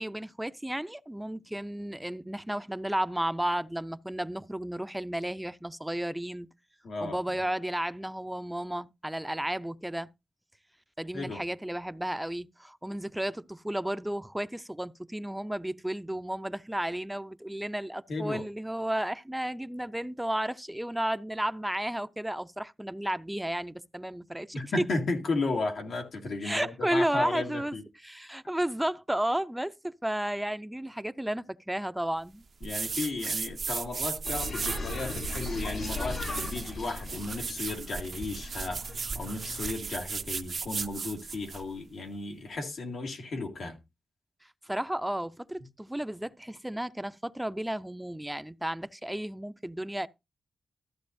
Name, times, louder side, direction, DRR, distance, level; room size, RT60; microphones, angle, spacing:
voice 1, 0.0-6.5 7.0-10.1 11.0-24.9 26.4-32.4 44.6-50.1, right 1 dB, 5° right, 0.4 m, -33 dB
voice 2, 6.8-7.2 11.1-11.4 18.1-18.4 24.5-27.8 32.6-38.9 39.1-43.8, left 3 dB, 85° left, 2.0 m, -34 dB
sound 1, 32.6-41.7, right 5 dB, 60° right, 0.5 m, -36 dB
sound 2, 34.2-39.7, left 2 dB, 65° left, 3.0 m, -38 dB
13.5 x 8.0 x 2.6 m
wide cardioid pair, 115°, 0 cm